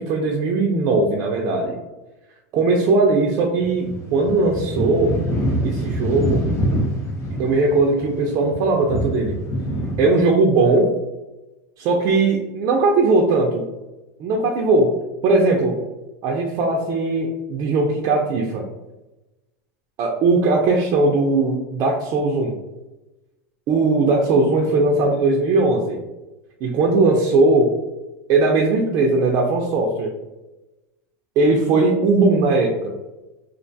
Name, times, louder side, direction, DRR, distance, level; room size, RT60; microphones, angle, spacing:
voice 1, 0.0-1.8 2.5-5.1 5.6-6.5 7.4-9.4 10.0-10.9 11.8-13.7 14.2-14.9 15.2-15.8 16.2-18.7 20.0-22.6 23.7-26.0 26.6-27.7 28.3-30.1 31.4-32.9, right 3 dB, 45° right, -1 dB, 0.4 m, -19 dB
sound 1, 3.6-10.2, equal, 35° left, 0.6 m, -25 dB
2.4 x 2.2 x 2.6 m, 1.0 s
supercardioid pair, 135°, 8 cm